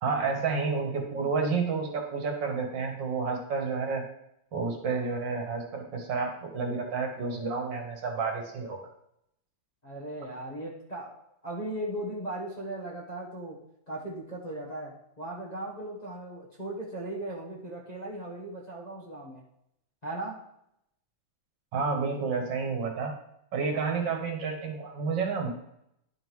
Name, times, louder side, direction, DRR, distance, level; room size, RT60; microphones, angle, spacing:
voice 1, 0.0-4.0 4.5-8.8 21.7-23.1 23.5-25.5, right 4 dB, 65° right, 2 dB, 1.9 m, -30 dB
voice 2, 9.8-19.4 20.0-20.4 23.7-23.9, right 1 dB, 25° left, -5 dB, 1.3 m, -38 dB
10.5 x 3.8 x 4.7 m, 0.77 s
omnidirectional pair, 2.1 m